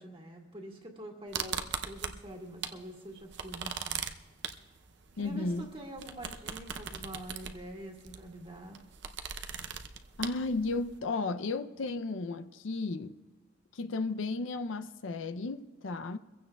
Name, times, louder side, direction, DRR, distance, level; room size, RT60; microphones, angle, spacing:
voice 1, 0.0-4.1 5.1-8.8, right 1 dB, 30° right, 1.8 m, -45 dB
sound 1, 1.3-2.8 3.1-11.0, right 7 dB, 60° right, 0.6 m, -39 dB
voice 2, 5.2-5.7 10.2-13.2 13.7-16.2, left 3 dB, 80° left, 0.5 m, -34 dB
24.0 x 15.5 x 2.3 m
head